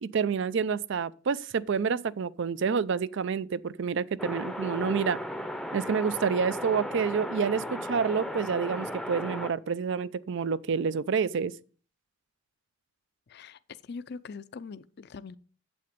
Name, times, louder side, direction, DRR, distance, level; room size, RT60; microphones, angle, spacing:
voice 1, 0.0-5.2 5.7-11.5, right 6 dB, 65° right, 0.4 m, -28 dB
sound 1, 4.2-9.5, equal, ahead, 0.6 m, -35 dB
voice 2, 13.3-15.4, left 5 dB, 55° left, 0.5 m, -42 dB
8.7 x 7.8 x 5.1 m
head